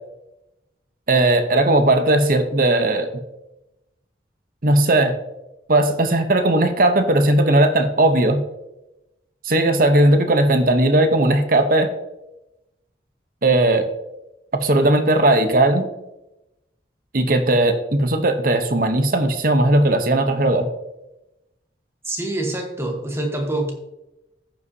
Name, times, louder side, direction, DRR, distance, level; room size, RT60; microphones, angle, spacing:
voice 1, 1.1-3.1 4.6-5.1 5.7-8.4 9.4-11.9 13.4-13.9 14.6-15.9 17.1-20.7, right 1 dB, 50° right, 7 dB, 0.8 m, -17 dB
voice 2, 22.0-23.7, right 1 dB, 15° right, 2 dB, 1.1 m, -25 dB
16.0 x 5.4 x 2.7 m, 0.94 s
head